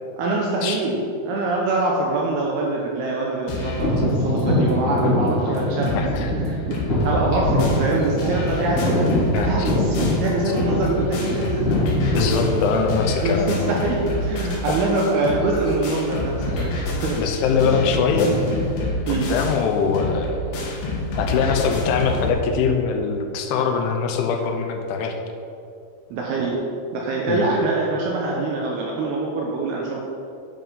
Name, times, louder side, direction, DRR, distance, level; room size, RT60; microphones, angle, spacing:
voice 1, 0.2-9.1 9.4-11.7 13.2-17.2 19.1-19.3 26.1-26.6 26.9-30.0, right 2 dB, 75° right, -2 dB, 2.5 m, -24 dB
sound 1, 3.5-3.9 4.4-4.5 4.7-4.8 5.3-5.4 5.6-6.2 6.4-22.3, left 2 dB, 70° left, 3.2 m, -28 dB
sound 2, 3.7-13.5 14.2-14.3 14.9-15.2 15.4-15.7 16.3-16.9 17.1-20.6, left 1 dB, 30° left, 2.3 m, -24 dB
voice 2, 6.0-6.3 9.3-9.7 12.1-13.7 14.7-14.8 17.2-18.3 19.1-20.8 21.2-25.1 27.3-27.5, left 5 dB, 85° left, 3 dB, 3.3 m, -22 dB
9.5 x 5.5 x 5.5 m, 2.6 s
omnidirectional pair, 5.3 m